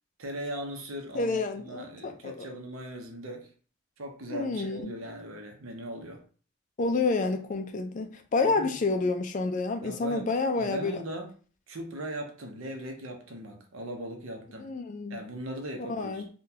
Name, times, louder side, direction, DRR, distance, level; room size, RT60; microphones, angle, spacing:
voice 1, 0.2-3.5 4.0-6.2 8.4-8.8 9.8-10.2 10.6-11.3 11.7-14.7 15.1-16.2, right 1 dB, 70° right, 0.7 m, -39 dB
voice 2, 1.1-2.5 4.3-4.9 6.8-11.0 14.6-15.2 15.9-16.3, left 3 dB, 35° left, 0.3 m, -29 dB
3.7 x 2.2 x 2.7 m
head